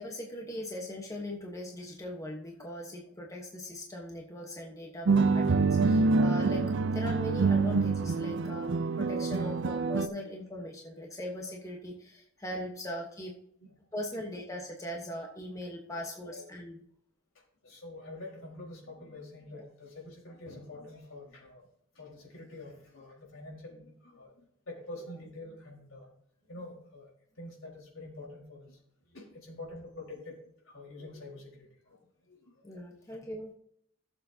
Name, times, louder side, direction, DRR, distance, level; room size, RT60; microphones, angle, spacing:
voice 1, 0.0-6.6 6.9-13.3 13.9-16.8 19.5-19.6 32.6-33.5, left 1 dB, 15° left, 0 dB, 1.1 m, -40 dB
sound 1, 5.1-10.1, right 4 dB, 60° right, 0.5 m, -26 dB
voice 2, 17.6-21.6 21.9-26.1 26.5-27.1 27.4-28.8 29.1-30.4 30.7-32.0 32.3-32.4, left 2 dB, 70° left, -2 dB, 4.3 m, -46 dB
16.5 x 7.2 x 2.8 m, 0.68 s
head